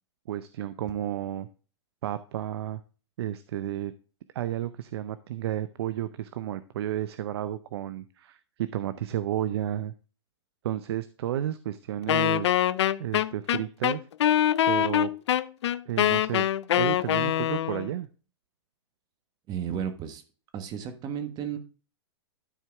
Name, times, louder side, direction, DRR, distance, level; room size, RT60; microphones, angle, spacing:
voice 1, 0.3-1.5 2.0-2.8 3.2-3.9 4.3-9.9 10.6-12.5 13.0-14.1 14.6-15.1 15.9-16.4 16.8-18.1, right 12 dB, 60° right, 13 dB, 0.6 m, -32 dB
Wind instrument woodwind instrument, 12.1-17.9, left 11 dB, 70° left, 0.5 m, -24 dB
voice 2, 19.5-20.2 20.5-21.6, right 8 dB, 25° right, 8 dB, 1.4 m, -33 dB
12.5 x 4.6 x 3.5 m, 0.36 s
hypercardioid pair, 140°, 15 cm